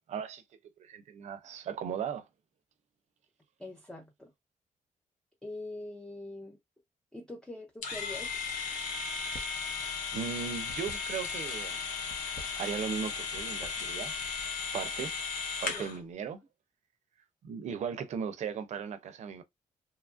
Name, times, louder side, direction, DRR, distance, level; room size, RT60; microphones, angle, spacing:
voice 1, 0.1-0.4 0.8-2.3 10.1-11.8 12.6-14.1 14.7-15.1 15.6-16.4 17.4-19.4, right 7 dB, 60° right, 0.5 m, -37 dB
voice 2, 3.6-4.3 5.4-6.6 7.1-8.3 15.7-15.9, left 2 dB, 5° left, 0.5 m, -43 dB
sound 1, 7.8-16.0, left 5 dB, 80° left, 0.8 m, -36 dB
sound 2, 9.2-9.6 9.9-11.5 12.0-13.1 13.3-13.7 14.2-15.1, equal, 35° left, 0.8 m, -49 dB
2.9 x 2.4 x 2.4 m
cardioid pair, 140°, 13 cm